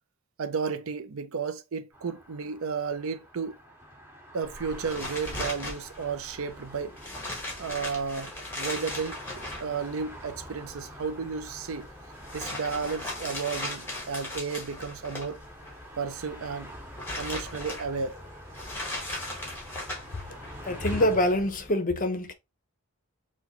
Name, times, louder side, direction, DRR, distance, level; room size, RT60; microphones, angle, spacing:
voice 1, 0.4-3.6 4.3-7.0 7.6-9.2 9.6-11.9 12.3-15.4 16.0-16.7 17.2-18.2, right 5 dB, 70° right, 0.5 m, -33 dB
sound 1, 1.9-21.3, equal, 15° right, 2.0 m, -47 dB
sound 2, 4.4-21.7, left 1 dB, 10° left, 1.3 m, -39 dB
voice 2, 20.6-22.3, left 1 dB, 35° left, 0.7 m, -25 dB
5.9 x 2.2 x 3.0 m
head